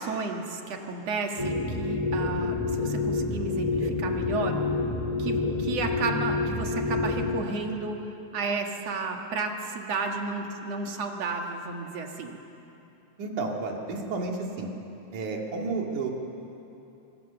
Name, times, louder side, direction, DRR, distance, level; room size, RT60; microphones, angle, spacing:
voice 1, 0.0-4.6 5.2-8.0 8.3-12.4, right 4 dB, 60° right, 2 dB, 2.7 m, -32 dB
sound 1, 1.4-7.4, left 3 dB, 20° left, 0.9 m, -28 dB
voice 2, 13.2-14.7 15.1-16.1, right 3 dB, 75° right, 1 dB, 3.8 m, -31 dB
25.0 x 23.0 x 6.9 m, 2.9 s
omnidirectional pair, 3.5 m